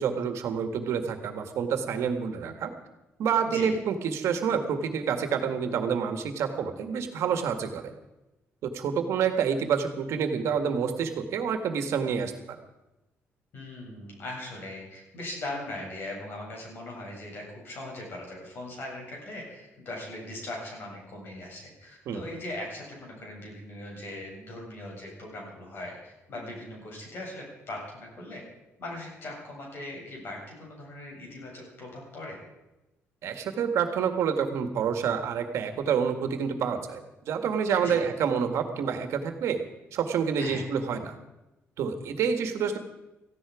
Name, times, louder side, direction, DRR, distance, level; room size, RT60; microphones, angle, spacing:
voice 1, 0.0-2.7 3.2-7.9 8.6-12.6 22.1-22.2 33.2-39.6 39.9-41.2 41.8-42.8, right 7 dB, 70° right, 7 dB, 1.8 m, -28 dB
voice 2, 13.5-28.4 28.8-32.4 37.8-38.0 40.4-40.6, left 1 dB, 45° left, -1 dB, 7.8 m, -40 dB
18.0 x 15.0 x 5.0 m, 0.99 s
cardioid pair, 175°, 5 cm